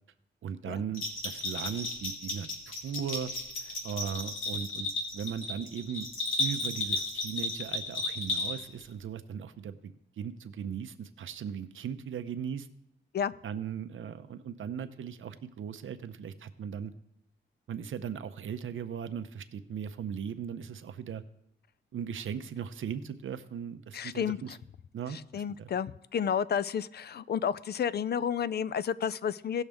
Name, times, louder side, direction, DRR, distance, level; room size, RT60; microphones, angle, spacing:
voice 1, 0.4-3.3 3.8-6.1 6.4-12.7 13.4-16.9 17.7-21.2 21.9-24.6 24.9-25.7, right 8 dB, 90° right, 10 dB, 0.7 m, -38 dB
Bell, 0.9-8.8, left 2 dB, 90° left, 2.3 m, -34 dB
voice 2, 23.9-24.6 25.1-29.6, left 8 dB, 55° left, 17 dB, 0.4 m, -31 dB
17.5 x 6.4 x 3.5 m, 0.80 s
wide cardioid pair, 110°, 20 cm